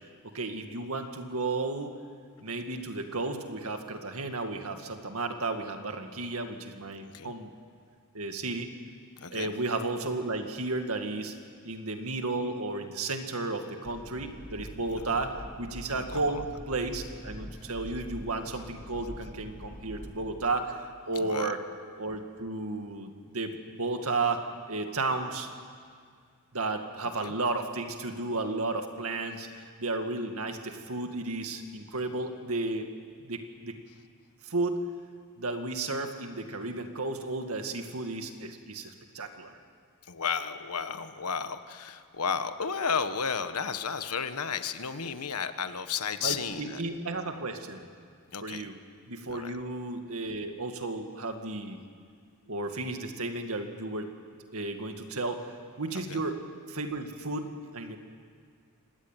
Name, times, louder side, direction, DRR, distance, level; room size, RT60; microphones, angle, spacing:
voice 1, 0.3-2.0 2.4-7.5 8.1-8.7 9.3-11.3 11.6-21.6 22.0-25.5 26.5-32.9 33.2-33.8 34.4-34.8 35.4-39.6 46.2-47.9 48.4-48.8 49.1-51.8 52.5-54.1 54.5-55.5 55.8-56.4 56.7-58.0, right 2 dB, 70° right, 5 dB, 2.2 m, -33 dB
voice 2, 9.2-9.5 15.9-16.4 21.2-21.5 27.2-27.3 40.1-46.8 48.3-48.6 49.3-49.5 55.9-56.2, left 6 dB, 85° left, 10 dB, 1.3 m, -33 dB
sound 1, 13.8-20.3, equal, 5° left, 3.6 m, -44 dB
26.0 x 19.0 x 9.2 m, 2.1 s
head